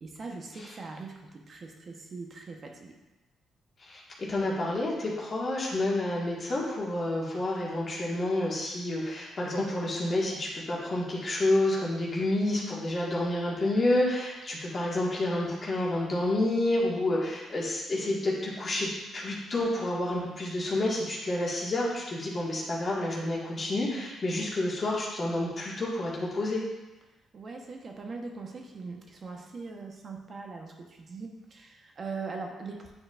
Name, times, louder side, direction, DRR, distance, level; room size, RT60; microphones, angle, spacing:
voice 1, 0.0-2.9 27.3-32.9, right 4 dB, 45° right, 2 dB, 1.0 m, -41 dB
voice 2, 3.8-26.6, left 1 dB, 40° left, -5 dB, 1.7 m, -29 dB
9.2 x 4.4 x 2.5 m, 1.1 s
cardioid pair, 90°, 0 cm